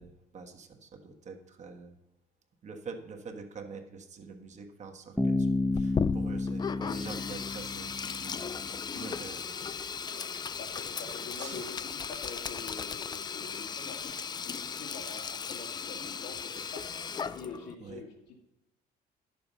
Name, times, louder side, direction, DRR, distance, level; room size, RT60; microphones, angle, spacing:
voice 1, 0.0-1.9 2.6-9.6 11.1-11.6 16.6-16.7 17.8-18.0, right 4 dB, 45° right, 4 dB, 1.4 m, -46 dB
Bass guitar, 5.2-8.9, left 2 dB, ahead, 0.9 m, -31 dB
Sink (filling or washing), 5.7-17.7, left 6 dB, 25° left, 0.4 m, -36 dB
voice 2, 10.6-18.4, left 5 dB, 80° left, 2 dB, 2.2 m, -46 dB
10.5 x 6.9 x 5.4 m, 0.94 s
cardioid pair, 110°, 17 cm